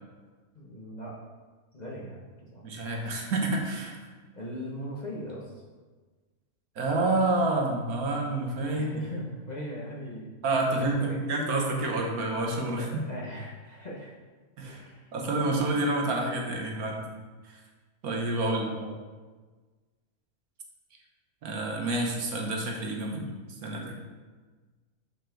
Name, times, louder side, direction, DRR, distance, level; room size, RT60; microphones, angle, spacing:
voice 1, 0.5-1.1 1.7-2.6 4.3-5.5 8.7-10.3 10.8-11.2 12.7-14.1 14.7-15.1 18.4-18.9, equal, 35° left, -4 dB, 0.9 m, -39 dB
voice 2, 2.6-3.9 6.8-8.9 10.4-13.0 14.6-14.8 15.1-17.1 17.4-17.6 18.0-18.7 21.4-23.3 23.6-23.9, right 2 dB, 70° right, 1 dB, 1.5 m, -28 dB
7.0 x 5.5 x 3.8 m, 1.4 s
omnidirectional pair, 1.6 m